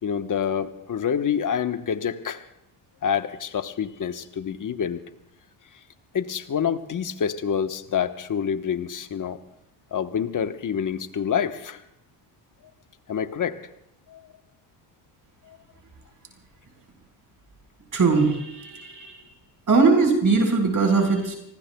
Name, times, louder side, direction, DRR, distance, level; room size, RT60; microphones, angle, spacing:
voice 1, 0.0-2.4 3.0-5.0 5.7-5.8 6.1-9.4 9.9-11.8 13.1-13.6 14.1-14.3 15.4-15.6, left 8 dB, 40° left, 10 dB, 1.1 m, -27 dB
voice 2, 17.9-19.2 19.7-21.4, right 4 dB, 40° right, 3 dB, 4.6 m, -20 dB
30.0 x 19.0 x 2.3 m, 0.82 s
supercardioid pair, 70°, 49 cm